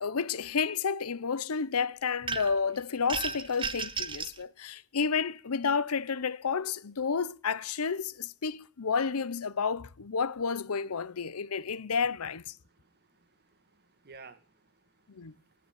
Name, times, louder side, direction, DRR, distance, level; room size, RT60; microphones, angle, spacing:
voice 1, 0.0-12.5 15.1-15.3, left 5 dB, 85° left, 0.7 m, -31 dB
sound 1, 2.3-2.7 3.1-4.4, right 4 dB, 25° right, 0.9 m, -34 dB
voice 2, 12.6-15.7, right 4 dB, 50° right, 1.7 m, -56 dB
15.0 x 10.0 x 9.3 m
head